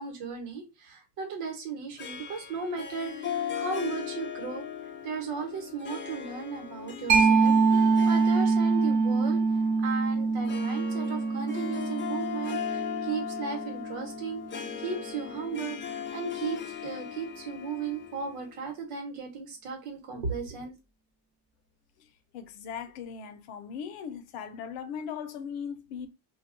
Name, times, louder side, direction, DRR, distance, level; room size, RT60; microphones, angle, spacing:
voice 1, 0.0-4.6 5.0-9.4 9.8-14.4 14.8-20.7, right 5 dB, 85° right, 1.2 m, -36 dB
Harp, 2.0-18.7, left 8 dB, 25° left, 0.4 m, -38 dB
Mallet percussion, 7.1-14.4, right 4 dB, 45° right, 0.9 m, -25 dB
voice 2, 22.3-26.1, left 7 dB, 85° left, 0.7 m, -38 dB
2.3 x 2.3 x 3.7 m
cardioid pair, 90°, 50 cm